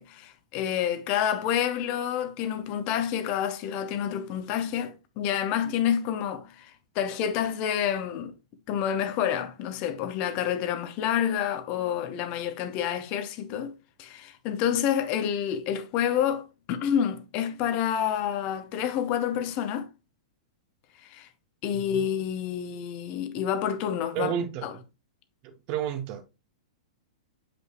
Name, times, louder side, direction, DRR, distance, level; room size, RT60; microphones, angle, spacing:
voice 1, 0.0-8.3 8.7-13.7 14.0-19.9 21.0-21.3 21.6-24.3 24.6-24.7, left 9 dB, 35° left, 0.8 m, -28 dB
voice 2, 21.7-22.1 24.1-24.8 25.4-26.2, right 9 dB, 35° right, 0.9 m, -32 dB
7.8 x 5.1 x 3.0 m
figure-of-eight pair, 100°, 3 cm